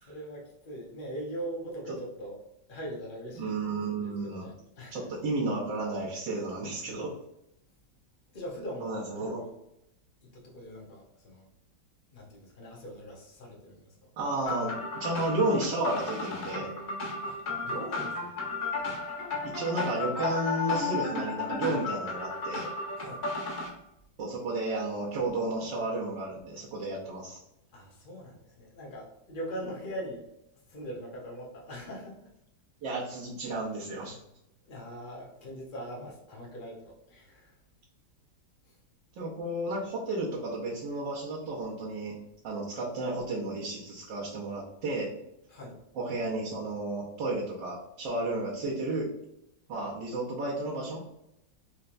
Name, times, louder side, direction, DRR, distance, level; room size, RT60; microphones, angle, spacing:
voice 1, 0.1-2.4 2.7-3.6 4.0-5.0 8.3-9.5 10.2-11.5 12.1-14.0 17.2-18.3 18.8-19.0 22.9-23.2 27.7-30.3 30.7-32.3 34.7-37.5 38.7-38.8 45.5-45.8, equal, 80° left, -3 dB, 0.4 m, -41 dB
voice 2, 3.4-4.5 4.9-7.1 8.8-9.4 14.2-16.7 19.4-22.7 24.2-27.4 32.8-34.2 39.2-42.1 42.4-45.1 45.9-49.1 49.7-51.0, right 2 dB, 70° right, -7 dB, 1.5 m, -32 dB
sound 1, 14.5-23.7, left 3 dB, 50° left, 1.5 m, -33 dB
4.3 x 2.9 x 2.5 m, 0.84 s
omnidirectional pair, 2.2 m